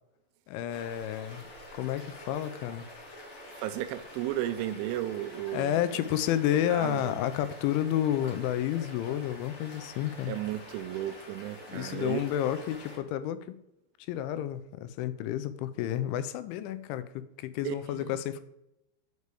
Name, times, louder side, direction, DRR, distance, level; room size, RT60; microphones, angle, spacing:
voice 1, 0.5-2.9 5.5-10.3 11.7-13.6 14.1-18.4, left 11 dB, 85° left, 3.0 m, -31 dB
sound 1, 0.7-13.0, left 1 dB, 45° left, 2.7 m, -47 dB
voice 2, 3.6-5.8 6.7-7.2 10.3-12.2 17.6-18.3, right 13 dB, 90° right, 3.0 m, -34 dB
6.7 x 5.4 x 4.7 m
omnidirectional pair, 5.3 m